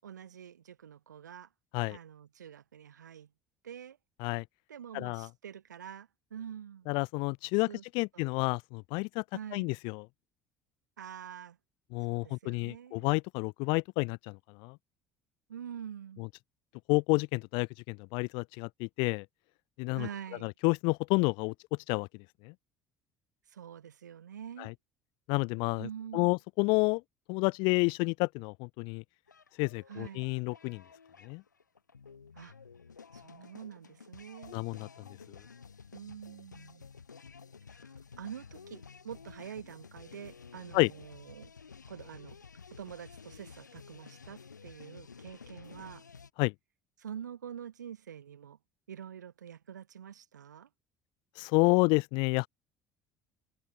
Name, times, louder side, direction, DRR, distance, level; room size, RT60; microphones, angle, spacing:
voice 1, 0.0-1.5 1.9-3.3 3.6-4.0 4.7-6.9 7.7-7.8 8.1-8.3 9.3-9.7 11.0-11.6 12.1-13.1 15.5-16.3 19.9-20.5 23.5-24.7 25.8-26.4 29.9-30.3 32.3-32.5 33.1-34.6 35.9-36.9 37.7-41.5 41.9-42.4 42.7-46.0 47.0-48.6 48.9-50.7, right 9 dB, 75° right, 7.0 m, -46 dB
voice 2, 4.9-5.3 6.9-7.7 7.9-9.2 9.5-10.0 11.9-14.8 16.9-19.2 19.8-20.1 20.4-21.5 21.9-22.1 22.4-22.5 24.6-24.7 25.3-25.9 26.1-27.0 27.3-29.0 29.6-30.8 31.2-31.4 34.5-34.9 40.7-40.9 46.4-46.5 51.4-52.5, left 30 dB, 60° left, 0.5 m, -29 dB
sound 1, 29.3-46.3, left 5 dB, 85° left, 1.7 m, -52 dB
figure-of-eight pair, 60°, 10 cm